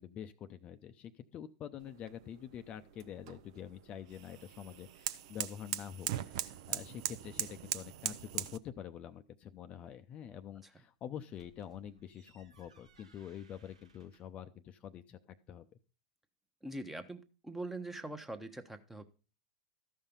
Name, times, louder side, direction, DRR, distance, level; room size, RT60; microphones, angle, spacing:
voice 1, 0.0-15.2 15.5-15.7, left 9 dB, 35° left, 9 dB, 0.6 m, -46 dB
sound 1, 1.8-8.6, right 12 dB, 60° right, 0.6 m, -41 dB
sound 2, 11.1-14.4, right 4 dB, 90° right, 1.3 m, -65 dB
voice 2, 16.6-19.0, right 2 dB, 5° right, 9 dB, 1.0 m, -43 dB
13.0 x 5.6 x 5.3 m, 0.35 s
hypercardioid pair, 100°, 3 cm